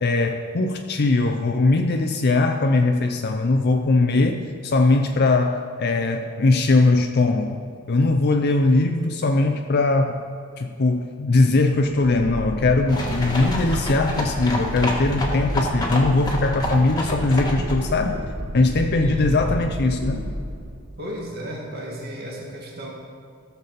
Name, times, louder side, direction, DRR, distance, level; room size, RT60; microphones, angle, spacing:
voice 1, 0.0-10.2 10.6-18.2 18.5-20.2, left 2 dB, 50° left, 4 dB, 0.5 m, -20 dB
sound 1, 12.0-21.1, equal, 90° right, 1.4 m, -30 dB
sound 2, 12.9-17.9, left 1 dB, 20° left, 1.5 m, -29 dB
voice 2, 19.0-19.4 21.0-22.9, equal, 50° right, -2 dB, 2.0 m, -33 dB
16.0 x 6.9 x 4.1 m, 2.2 s
head